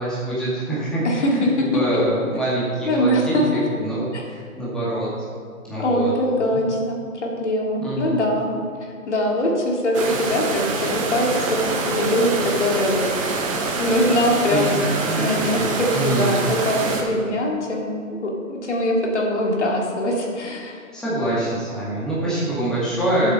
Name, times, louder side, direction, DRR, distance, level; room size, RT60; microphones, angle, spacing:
voice 1, 0.0-5.1 5.7-6.1 6.5-6.6 7.8-8.2 14.5-16.4 20.9-23.3, right 1 dB, ahead, -9 dB, 2.0 m, -25 dB
voice 2, 1.0-2.0 2.9-3.6 4.1-4.2 5.8-8.5 9.1-13.1 13.8-14.9 15.2-20.7 23.2-23.3, left 1 dB, 55° left, -1 dB, 2.5 m, -22 dB
sound 1, 9.9-17.0, right 3 dB, 20° right, 1.2 m, -25 dB
12.5 x 7.7 x 5.4 m, 2.1 s
figure-of-eight pair, 140°, 43 cm